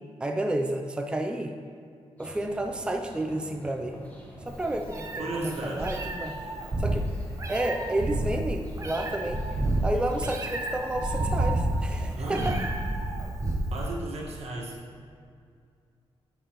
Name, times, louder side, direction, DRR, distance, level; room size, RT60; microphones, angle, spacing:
voice 1, 0.2-1.5 2.2-4.0 4.5-6.3 6.8-7.1 7.5-9.4 9.8-12.6, right 1 dB, 10° right, 4 dB, 0.5 m, -30 dB
sound 1, 2.2-12.7, equal, 15° left, 1.3 m, -46 dB
Meow, 4.5-13.9, right 1 dB, 30° right, 0.8 m, -30 dB
voice 2, 5.2-6.0 12.2-12.7 13.7-14.8, right 2 dB, 85° right, -3 dB, 1.6 m, -35 dB
9.6 x 6.6 x 3.0 m, 2.3 s
wide cardioid pair, 115°, 10 cm